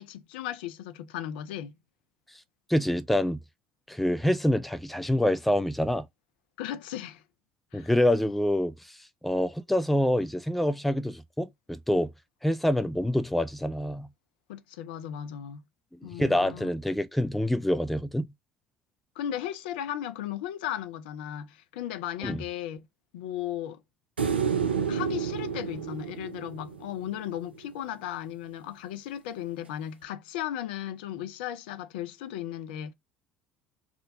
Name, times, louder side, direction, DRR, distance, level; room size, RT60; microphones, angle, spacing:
voice 1, 0.0-1.7 6.6-7.2 7.7-7.9 14.5-15.6 16.0-16.7 19.2-22.9 23.1-23.8 24.9-32.9, left 11 dB, 70° left, 0.4 m, -36 dB
voice 2, 2.7-3.4 3.9-6.0 7.7-8.7 9.2-12.1 12.4-14.1 16.0-18.3 22.2-22.4, left 1 dB, ahead, 0.4 m, -26 dB
sound 1, 24.2-27.4 30.0-30.1, right 7 dB, 85° right, 0.4 m, -30 dB
3.6 x 2.2 x 3.8 m
figure-of-eight pair, 60°, 6 cm